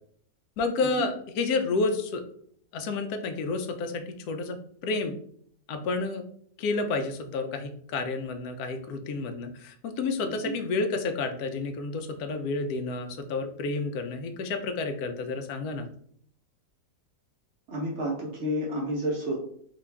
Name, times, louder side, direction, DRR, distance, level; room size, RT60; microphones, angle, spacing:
voice 1, 0.6-2.2 2.7-4.6 4.8-5.1 5.7-6.2 6.6-15.9, left 3 dB, 70° left, 6 dB, 0.9 m, -30 dB
voice 2, 10.2-10.5 17.7-19.4, equal, 55° right, -3 dB, 0.9 m, -30 dB
3.8 x 2.3 x 3.3 m, 0.64 s
omnidirectional pair, 1.9 m